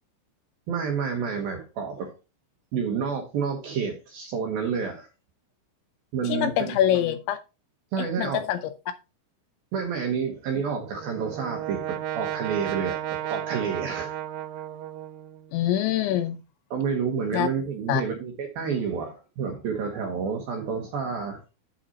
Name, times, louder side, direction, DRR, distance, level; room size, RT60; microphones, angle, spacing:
voice 1, 0.7-2.1 2.7-5.1 6.1-6.7 7.9-8.4 9.7-14.1 16.7-21.4, right 6 dB, 70° right, 2.4 m, -29 dB
voice 2, 6.3-7.4 8.0-8.6 15.5-16.4 17.3-17.5 17.9-18.0, left 11 dB, 80° left, 2.7 m, -24 dB
Brass instrument, 10.7-15.5, right 12 dB, 85° right, 3.3 m, -33 dB
8.8 x 5.9 x 4.0 m
omnidirectional pair, 5.7 m